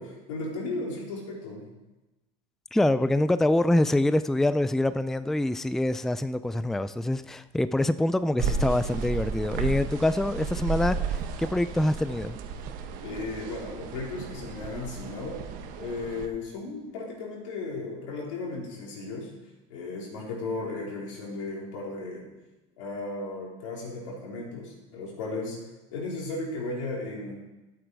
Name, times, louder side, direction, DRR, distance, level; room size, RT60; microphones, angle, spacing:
voice 1, 0.0-1.6 13.0-15.4 15.8-19.3 19.7-22.3 22.8-25.6 25.9-27.3, left 3 dB, 90° left, 3.9 m, -35 dB
voice 2, 2.7-12.4, left 1 dB, ahead, 0.4 m, -25 dB
sound 1, 8.4-16.3, right 5 dB, 60° right, 1.2 m, -33 dB
12.5 x 8.0 x 4.7 m
supercardioid pair, 105°, 16 cm